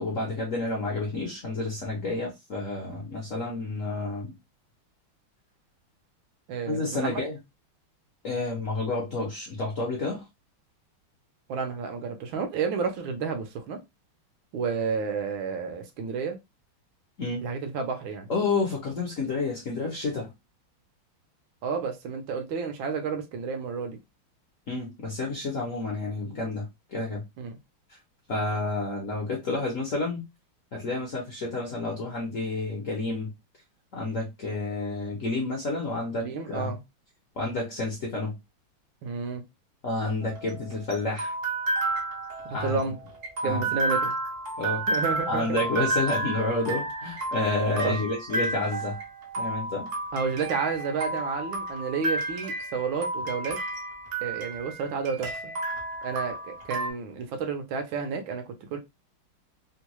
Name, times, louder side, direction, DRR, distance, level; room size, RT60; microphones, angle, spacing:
voice 1, 0.0-4.3 6.7-7.4 8.2-10.2 17.2-17.5 18.3-20.3 24.7-26.7 26.9-27.2 28.3-30.2 30.7-33.3 33.9-36.7 37.4-38.4 39.8-41.3 42.5-42.8 43.4-43.8 44.6-44.8 45.3-49.0 49.4-49.9, left 2 dB, 60° left, 0.8 m, -30 dB
voice 2, 6.5-7.2 11.5-13.8 14.5-16.4 17.4-18.3 21.6-24.0 27.4-27.6 36.2-36.8 39.0-39.4 42.6-43.0 43.4-44.1 44.9-45.6 47.8-48.0 50.1-53.6 54.2-55.5 56.0-58.8, right 5 dB, 75° right, 1.4 m, -31 dB
sound 1, 40.2-56.9, right 2 dB, 55° right, 0.8 m, -31 dB
3.6 x 2.2 x 2.9 m
omnidirectional pair, 2.3 m